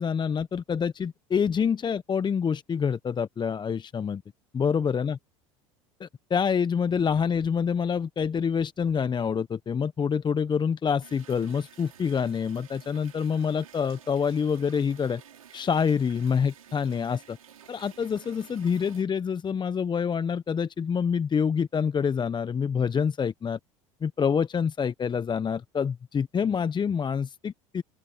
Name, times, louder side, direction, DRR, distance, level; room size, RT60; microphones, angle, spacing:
voice 1, 0.0-4.2 4.5-5.2 6.0-15.2 15.5-17.4 17.7-23.6 24.0-27.8, left 6 dB, 25° left, 1.0 m, -27 dB
sound 1, 11.0-19.0, right 9 dB, 85° right, 4.8 m, -52 dB
open air
hypercardioid pair, 75°, 17 cm